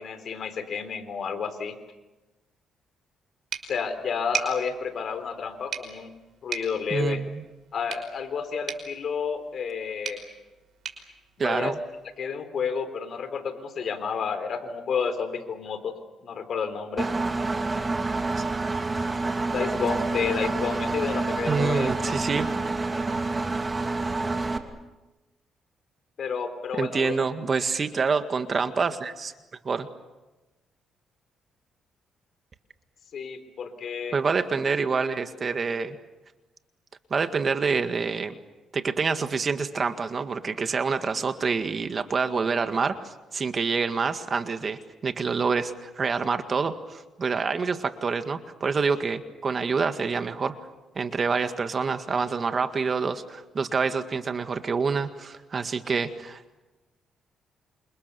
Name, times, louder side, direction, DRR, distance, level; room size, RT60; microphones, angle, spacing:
voice 1, 0.0-1.7 3.7-6.1 6.4-7.2 7.7-10.2 11.4-11.7 12.2-15.9 16.2-17.1 19.5-22.2 26.2-27.1 33.1-34.2, left 6 dB, 60° left, 10 dB, 3.9 m, -30 dB
sound 1, 3.5-12.2, right 7 dB, 60° right, 5.4 m, -39 dB
voice 2, 6.9-7.4 11.4-11.8 21.5-22.5 26.8-29.3 29.6-29.9 34.1-36.0 37.1-38.3 38.7-50.6 51.0-56.6, right 5 dB, 40° right, 8 dB, 1.9 m, -27 dB
Engine, 17.0-24.6, right 3 dB, 25° right, 2.8 m, -28 dB
28.5 x 28.0 x 7.0 m, 1.1 s
cardioid pair, 90°, 0 cm